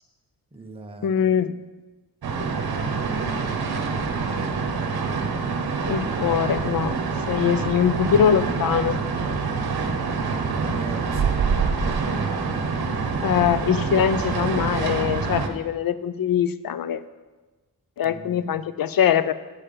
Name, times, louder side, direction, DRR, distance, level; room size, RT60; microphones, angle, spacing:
voice 1, 0.5-1.3 2.9-3.7 4.0-4.6 10.5-11.4 18.0-18.5, right 3 dB, 15° right, 2 dB, 0.7 m, -41 dB
voice 2, 1.0-1.6 5.9-7.0 7.3-9.0 13.2-17.0 18.0-19.3, left 8 dB, 65° left, 14 dB, 0.5 m, -22 dB
sound 1, 2.2-15.5, right 5 dB, 75° right, 0.9 m, -26 dB
8.2 x 5.6 x 6.7 m, 1.2 s
wide cardioid pair, 170°, 37 cm